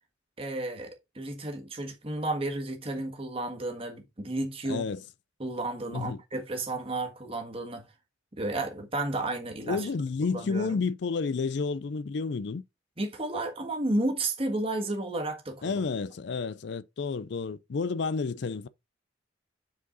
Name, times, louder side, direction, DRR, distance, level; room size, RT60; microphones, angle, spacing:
voice 1, 0.4-4.8 5.4-7.8 8.3-9.9 10.3-10.8 13.0-15.7, right 2 dB, 30° right, 1.5 m, -32 dB
voice 2, 4.7-5.0 5.9-6.2 9.7-12.6 15.6-18.7, left 4 dB, 60° left, 0.4 m, -30 dB
7.4 x 4.7 x 4.0 m
head